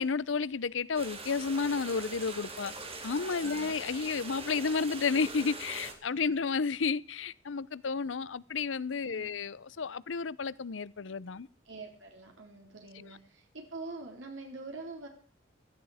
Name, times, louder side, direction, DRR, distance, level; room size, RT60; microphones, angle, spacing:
voice 1, 0.0-2.7 3.0-11.5 13.0-13.1, left 5 dB, 90° left, 0.7 m, -32 dB
sound 1, 0.9-5.9, right 3 dB, 35° right, 3.1 m, -42 dB
voice 2, 3.4-3.8 9.0-9.3 11.7-15.1, right 3 dB, 90° right, 3.9 m, -45 dB
16.5 x 14.0 x 5.0 m
head